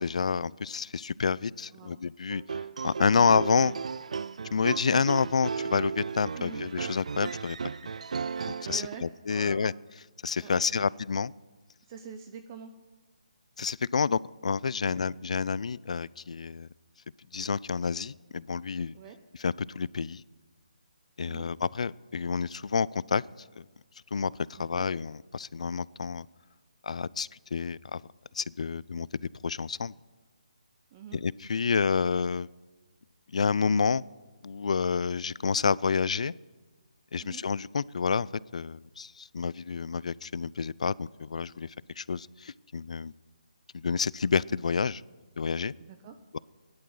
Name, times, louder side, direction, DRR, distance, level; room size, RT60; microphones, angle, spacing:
voice 1, 0.0-2.4 2.8-3.7 4.5-7.6 8.6-9.7 10.2-11.3 13.6-16.7 17.3-19.0 19.4-20.2 21.2-23.2 23.6-23.7 24.1-26.3 26.8-28.0 28.3-29.9 31.1-32.5 33.3-34.0 34.4-36.3 37.1-38.3 38.5-41.7 42.0-43.1 43.7-45.0 45.4-45.7, left 5 dB, 65° left, 22 dB, 0.4 m, -29 dB
voice 2, 1.7-2.0 6.3-6.6 8.7-9.7 10.4-10.8 11.9-12.7 14.9-15.0 18.9-19.2 21.3-21.5 24.5-24.9 30.9-31.2 37.2-37.4 45.8-46.2, right 7 dB, 25° right, 8 dB, 0.8 m, -45 dB
sound 1, 2.3-9.0, right 5 dB, 65° right, 0.4 m, -35 dB
16.5 x 11.5 x 6.4 m, 1.3 s
figure-of-eight pair, 155°, 4 cm